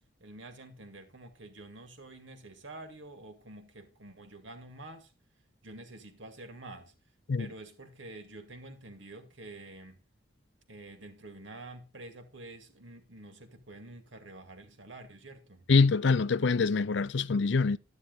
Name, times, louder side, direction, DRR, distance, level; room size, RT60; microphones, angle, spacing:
voice 1, 0.2-5.1 5.6-6.9 7.4-10.0 10.7-15.7, right 2 dB, 75° right, 2.2 m, -48 dB
voice 2, 15.7-17.8, left 4 dB, 65° left, 0.5 m, -25 dB
11.5 x 9.5 x 3.9 m
head